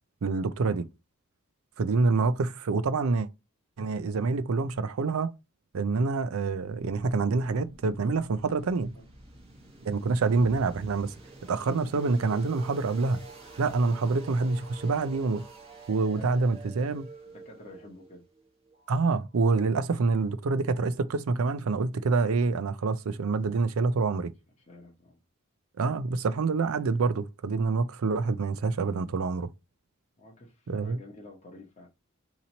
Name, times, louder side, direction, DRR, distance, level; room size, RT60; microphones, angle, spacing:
voice 1, 0.2-0.9 1.8-3.3 3.8-5.3 5.7-8.9 9.8-11.2 11.5-13.3 13.6-15.4 15.9-17.1 18.9-24.3 25.8-29.5 30.7-31.0, right 4 dB, 80° right, 0.5 m, -26 dB
sound 1, 6.7-19.5, right 3 dB, 25° right, 1.1 m, -49 dB
voice 2, 17.3-18.2 24.7-25.2 30.2-31.9, left 1 dB, 30° left, 0.9 m, -49 dB
3.0 x 2.8 x 3.9 m
head